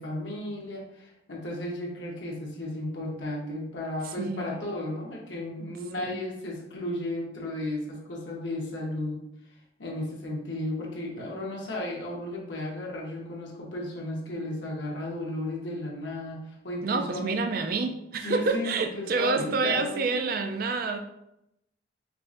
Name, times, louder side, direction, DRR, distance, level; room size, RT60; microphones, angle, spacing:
voice 1, 0.0-9.2 9.8-17.4 18.2-20.3, left 1 dB, 90° left, -2 dB, 1.0 m, -34 dB
voice 2, 4.0-4.6 6.1-6.2 11.2-11.3 16.8-21.0, right 4 dB, 55° right, 6 dB, 0.4 m, -28 dB
4.7 x 2.5 x 2.5 m, 0.82 s
head